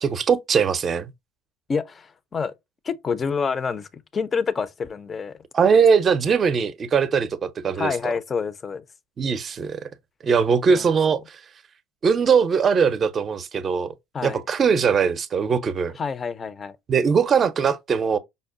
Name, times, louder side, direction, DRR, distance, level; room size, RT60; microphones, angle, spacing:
voice 1, 0.0-1.1 5.5-8.1 9.2-9.8 10.2-11.4 12.0-13.9 14.2-15.9 16.9-18.2, right 6 dB, 35° right, 0.5 m, -21 dB
voice 2, 1.7-2.5 2.8-5.4 7.8-8.8 10.7-10.8 14.1-14.4 16.0-16.8, left 5 dB, 30° left, 0.4 m, -27 dB
5.2 x 2.1 x 2.4 m
supercardioid pair, 90°, 0 cm